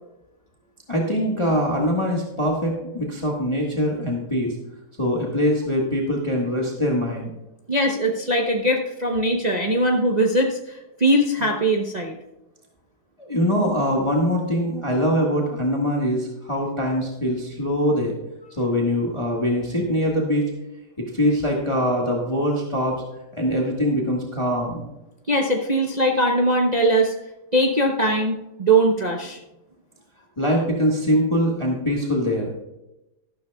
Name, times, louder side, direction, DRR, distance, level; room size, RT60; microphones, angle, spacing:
voice 1, 0.9-4.5 5.0-7.3 13.2-18.1 18.6-20.4 21.1-23.0 23.3-24.9 30.4-32.5, equal, 20° left, -2 dB, 1.5 m, -23 dB
voice 2, 7.7-12.2 25.3-27.1 27.5-29.4, right 1 dB, 35° right, 0 dB, 0.7 m, -21 dB
13.5 x 12.0 x 2.3 m, 0.94 s
omnidirectional pair, 1.8 m